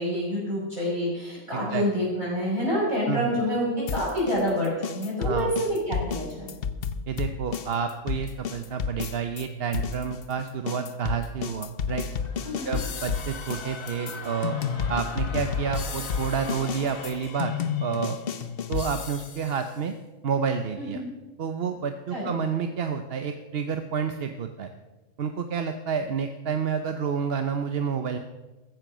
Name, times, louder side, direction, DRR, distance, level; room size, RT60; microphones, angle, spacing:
voice 1, 0.0-6.5 12.4-12.8 20.8-21.0 22.1-22.3, equal, 20° right, -9 dB, 6.3 m, -27 dB
voice 2, 1.5-1.8 3.1-3.3 5.2-5.5 7.1-12.1 12.6-14.6 14.9-18.2 18.7-20.0 20.2-21.0 21.4-24.7 25.2-28.2, right 6 dB, 50° right, 8 dB, 1.0 m, -29 dB
sound 1, 3.9-9.5 9.7-19.5, left 7 dB, 50° left, 0.9 m, -31 dB
sound 2, 11.9-17.2, left 3 dB, 85° left, 2.6 m, -42 dB
14.5 x 14.0 x 6.2 m, 1.2 s
omnidirectional pair, 1.4 m